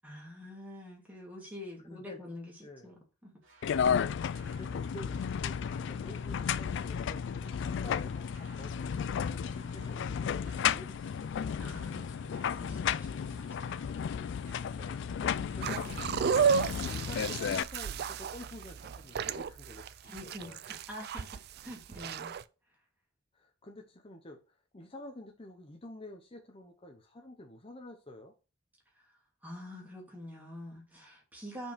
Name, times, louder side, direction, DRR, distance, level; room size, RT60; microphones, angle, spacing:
voice 1, 0.0-3.4 11.6-13.9 20.1-22.3 29.0-29.1 29.4-31.7, left 1 dB, 10° right, 2.4 m, -46 dB
voice 2, 1.9-2.2 2.6-2.9 4.3-12.1 14.4-16.1 16.4-20.6 23.3-28.3, left 1 dB, 30° left, 0.8 m, -50 dB
sound 1, 3.4-20.3, right 1 dB, 90° right, 2.1 m, -57 dB
sound 2, 3.6-17.6, left 7 dB, 65° left, 0.3 m, -33 dB
sound 3, 15.6-22.4, right 6 dB, 55° right, 0.4 m, -32 dB
5.6 x 4.6 x 5.1 m
head